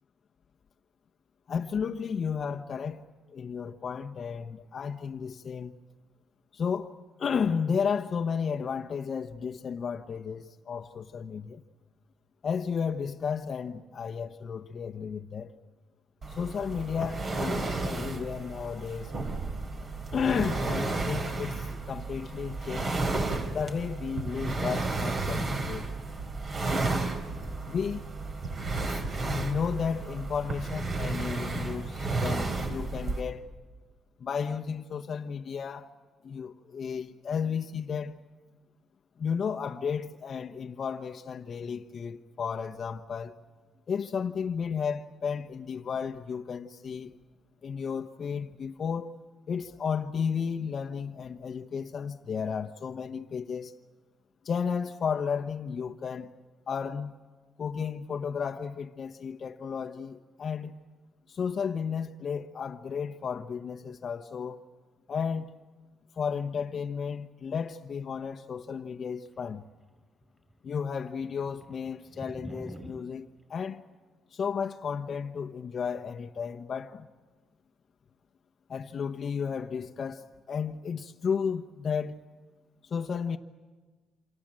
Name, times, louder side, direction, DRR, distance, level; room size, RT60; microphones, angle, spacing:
voice 1, 1.5-3.0 3.3-5.7 6.5-6.9 7.2-11.6 12.4-15.5 16.3-19.1 20.1-23.0 23.5-25.9 27.7-28.0 28.9-33.4 34.2-35.9 36.2-38.2 39.2-43.3 43.9-47.2 47.6-49.1 49.5-53.7 54.4-56.3 56.7-57.1 57.6-60.8 61.3-64.6 65.1-65.5 66.2-69.6 70.6-73.8 74.3-77.1 78.7-82.2 82.8-83.4, left 6 dB, 50° left, 1.0 m, -33 dB
sound 1, 16.2-33.2, right 3 dB, 45° right, 3.6 m, -32 dB
sound 2, 69.3-70.3 70.5-70.6 70.9-73.0, right 1 dB, 10° right, 4.9 m, -44 dB
28.0 x 26.0 x 7.6 m
cardioid pair, 90°, 0 cm